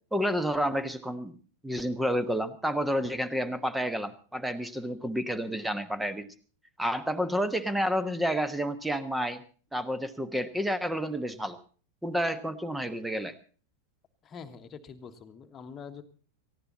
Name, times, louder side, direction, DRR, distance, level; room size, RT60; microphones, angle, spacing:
voice 1, 0.1-1.3 1.6-6.3 6.8-9.4 9.7-11.6 12.0-13.3, equal, 5° right, 13 dB, 1.3 m, -30 dB
voice 2, 14.2-16.0, left 6 dB, 25° left, 6 dB, 1.5 m, -45 dB
18.5 x 15.0 x 4.1 m, 0.40 s
figure-of-eight pair, 90°, 0 cm